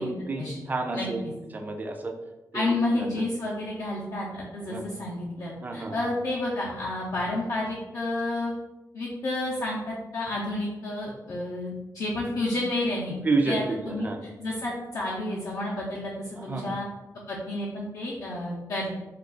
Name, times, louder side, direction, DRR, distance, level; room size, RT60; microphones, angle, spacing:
voice 1, 0.0-1.2 1.5-2.1 2.5-3.1 4.7-4.9 5.6-6.0 13.2-14.2 16.4-16.7, right 3 dB, 25° right, 3 dB, 0.3 m, -30 dB
voice 2, 0.9-1.3 2.5-8.5 8.9-13.2 13.4-14.1 14.4-16.9 17.3-19.0, left 2 dB, 55° left, -6 dB, 0.5 m, -30 dB
2.3 x 2.3 x 3.6 m, 1.0 s
wide cardioid pair, 155°, 7 cm